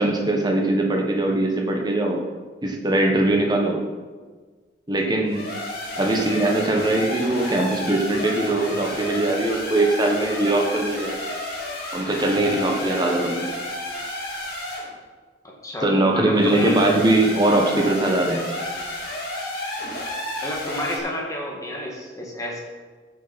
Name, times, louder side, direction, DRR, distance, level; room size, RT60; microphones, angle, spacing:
voice 1, 0.0-2.2 2.6-3.8 4.9-5.5 6.0-11.2 11.9-13.5 15.8-18.4, right 2 dB, 25° right, 1 dB, 1.4 m, -21 dB
sound 1, 5.2-14.9 16.3-21.0, left 1 dB, 55° left, 3.5 m, -31 dB
voice 2, 15.4-16.8 20.4-22.6, left 1 dB, 20° left, -2 dB, 1.9 m, -29 dB
15.0 x 6.8 x 4.3 m, 1.4 s
head